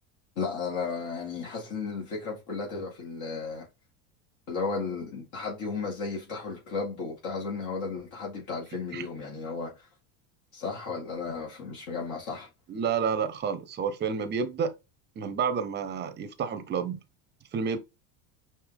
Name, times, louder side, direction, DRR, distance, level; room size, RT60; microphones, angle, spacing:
voice 1, 0.4-3.7 4.5-9.9 10.5-12.5, left 4 dB, 50° left, 2.4 m, -34 dB
voice 2, 12.7-14.7 15.2-17.0 17.5-17.8, right 6 dB, 30° right, 0.8 m, -30 dB
5.3 x 2.8 x 3.5 m
supercardioid pair, 125°, 38 cm